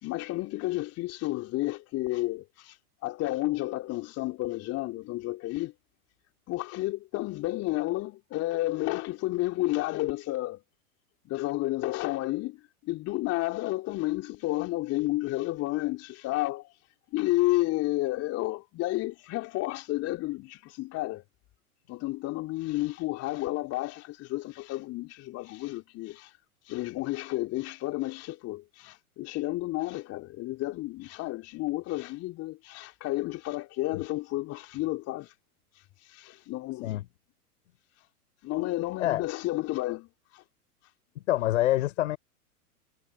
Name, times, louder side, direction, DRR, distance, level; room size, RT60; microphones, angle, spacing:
voice 1, 0.0-5.7 6.5-10.6 11.2-16.8 17.1-21.2 21.9-26.4 26.6-35.3 35.7-37.0 38.0-38.1 38.4-40.4, left 18 dB, 30° left, 3.0 m, -31 dB
voice 2, 41.3-42.2, left 14 dB, 55° left, 4.2 m, -26 dB
figure-of-eight pair, 100°, 46 cm